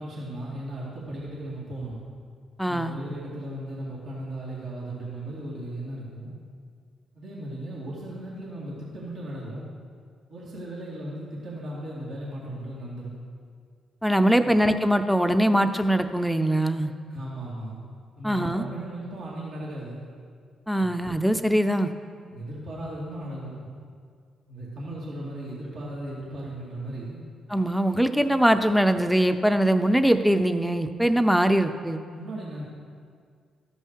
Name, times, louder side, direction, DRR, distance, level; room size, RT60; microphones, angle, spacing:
voice 1, 0.0-2.0 2.7-6.3 7.1-9.6 10.3-13.1 14.4-14.5 17.1-17.8 18.2-20.0 20.8-20.9 22.3-23.7 24.5-27.2 32.0-32.6, right 1 dB, 65° right, -6 dB, 2.3 m, -36 dB
voice 2, 2.6-3.0 14.0-16.9 18.2-18.6 20.7-21.9 27.5-32.0, right 1 dB, ahead, 9 dB, 0.6 m, -22 dB
13.0 x 5.5 x 4.7 m, 2.1 s
hypercardioid pair, 50°, 0 cm